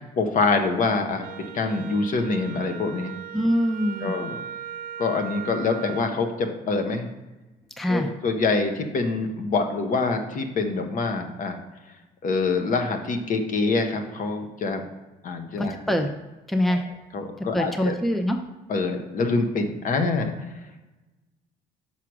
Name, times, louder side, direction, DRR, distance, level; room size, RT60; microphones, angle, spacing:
voice 1, 0.2-3.1 4.0-4.4 5.0-7.1 7.9-11.6 12.2-14.8 15.2-15.7 16.7-16.8 17.1-17.9 18.7-20.3, left 3 dB, 50° left, 5 dB, 1.0 m, -25 dB
Wind instrument woodwind instrument, 1.2-6.1, right 10 dB, 55° right, 0.6 m, -38 dB
voice 2, 3.3-4.2 7.8-8.1 15.6-16.1 16.5-16.8 17.5-18.4, equal, ahead, 6 dB, 0.5 m, -24 dB
5.8 x 4.8 x 6.1 m, 1.1 s
cardioid pair, 110°, 17 cm